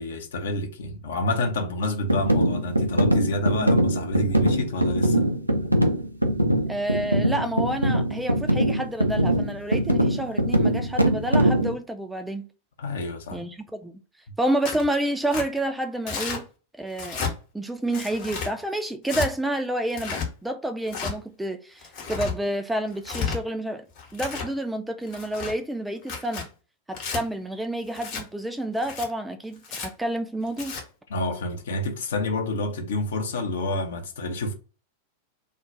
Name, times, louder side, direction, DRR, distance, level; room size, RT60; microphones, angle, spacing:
voice 1, 0.0-5.2 12.8-13.4 31.1-34.5, left 1 dB, 60° left, 0.6 m, -28 dB
sound 1, 2.1-11.7, right 1 dB, 85° right, 0.4 m, -22 dB
voice 2, 6.7-12.5 13.3-13.9 14.4-16.5 16.8-17.2 17.5-23.9 24.1-26.5 26.9-30.8, right 1 dB, 5° right, 0.3 m, -29 dB
Tearing, 14.6-14.9 15.3-15.5 16.1-16.4 16.9-17.3 17.9-18.5 19.0-19.3 19.9-20.3 20.9-21.1 21.8-22.3 22.9-23.4 24.0-24.5 25.1-25.5 26.0-26.5 26.9-27.2 27.9-28.2 28.8-29.1 29.6-29.9 30.5-30.8, left 5 dB, 45° left, 0.9 m, -32 dB
2.3 x 2.1 x 3.7 m
figure-of-eight pair, 90°, 0 cm